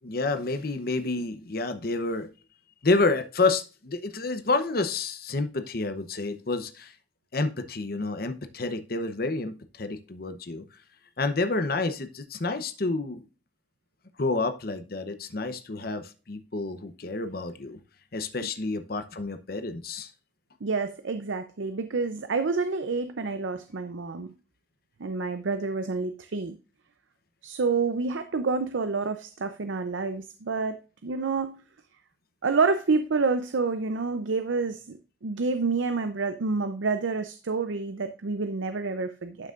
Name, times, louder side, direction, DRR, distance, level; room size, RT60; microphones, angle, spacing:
voice 1, 0.0-2.3 2.8-6.9 7.3-10.6 11.2-13.2 14.2-17.8 18.1-20.1, left 3 dB, 50° left, 0.8 m, -29 dB
voice 2, 20.6-24.3 25.0-26.6 27.4-30.8 31.0-31.6 32.4-39.5, right 4 dB, 85° right, 0.6 m, -28 dB
11.5 x 6.0 x 2.5 m
head